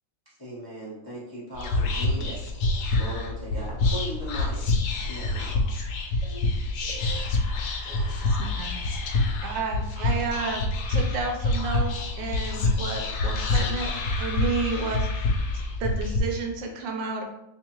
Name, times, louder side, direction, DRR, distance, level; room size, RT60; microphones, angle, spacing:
voice 1, 0.3-2.4 2.9-4.7 5.0-5.6, right 1 dB, 20° left, -8 dB, 0.5 m, -38 dB
Whispering, 1.5-16.2, left 2 dB, 70° left, 1.1 m, -27 dB
voice 2, 6.8-7.3 7.5-8.8 13.5-13.7, equal, 65° right, -3 dB, 1.6 m, -45 dB
voice 3, 8.3-8.7 9.4-13.9 14.2-15.4 15.8-17.2, right 4 dB, 80° right, 3 dB, 1.3 m, -31 dB
3.5 x 3.2 x 2.9 m, 0.87 s
omnidirectional pair, 2.1 m